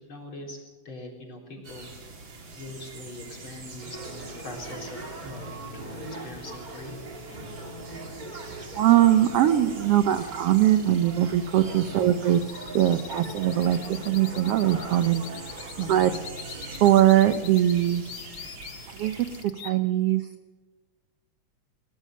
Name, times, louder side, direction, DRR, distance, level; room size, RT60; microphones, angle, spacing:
voice 1, 0.1-0.6 0.8-1.9 2.6-7.0 15.8-16.2, left 2 dB, 40° left, 1 dB, 4.4 m, -42 dB
sound 1, 1.6-19.4, right 3 dB, 40° right, 2.9 m, -44 dB
sound 2, 3.8-17.1, right 2 dB, 20° right, 1.6 m, -41 dB
voice 2, 8.7-12.4 12.7-16.1 16.8-18.0 18.9-19.2 19.4-20.3, right 12 dB, 70° right, 10 dB, 1.5 m, -21 dB
sound 3, 10.0-19.7, left 10 dB, 60° left, 1.7 m, -44 dB
21.0 x 19.5 x 6.5 m, 1.3 s
omnidirectional pair, 3.5 m